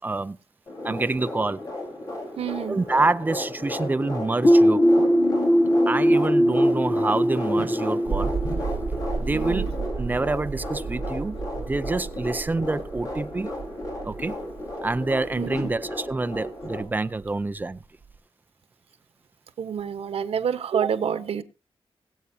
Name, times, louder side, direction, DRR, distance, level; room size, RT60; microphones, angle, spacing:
voice 1, 0.0-0.4 0.8-1.6 2.7-5.1 5.9-8.4 9.2-9.7 10.0-11.4 11.7-13.5 14.0-14.4 14.8-17.8, right 3 dB, 20° right, 0.5 m, -27 dB
sound 1, 0.7-16.8, left 1 dB, 40° left, 4.0 m, -34 dB
voice 2, 2.4-2.8 9.3-9.7 15.4-15.5 19.6-21.4, right 8 dB, 90° right, 1.1 m, -28 dB
sound 2, 4.4-10.0, equal, 20° left, 1.1 m, -21 dB
sound 3, 8.1-18.2, right 5 dB, 50° right, 1.0 m, -34 dB
22.0 x 8.2 x 2.7 m
wide cardioid pair, 175°, 10 cm